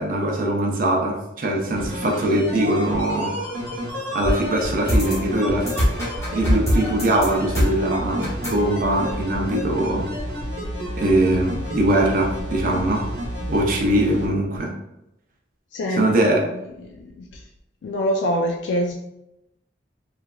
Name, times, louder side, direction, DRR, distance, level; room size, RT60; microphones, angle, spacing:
voice 1, 0.0-3.3 4.1-5.7 6.3-10.1 11.0-13.1 13.5-14.7 16.0-16.4, right 1 dB, 50° right, 0 dB, 0.5 m, -21 dB
sound 1, 1.7-14.3 14.6-14.7, equal, 75° right, 0.9 m, -30 dB
sound 2, 4.2-9.3, equal, 15° left, 1.0 m, -25 dB
voice 2, 15.7-16.1 16.8-17.4 17.8-19.0, equal, 85° left, 1 dB, 0.3 m, -25 dB
3.1 x 2.4 x 2.3 m, 0.87 s
head